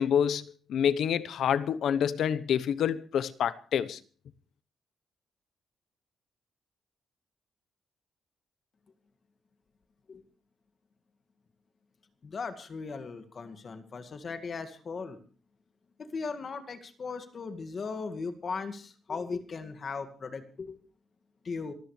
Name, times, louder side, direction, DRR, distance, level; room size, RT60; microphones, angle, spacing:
voice 1, 0.0-4.0, left 8 dB, 70° left, 1.0 m, -27 dB
voice 2, 12.2-15.2 16.0-20.8 21.4-21.7, left 4 dB, 40° left, 2.0 m, -38 dB
26.5 x 13.5 x 3.3 m
cardioid pair, 140°, 0 cm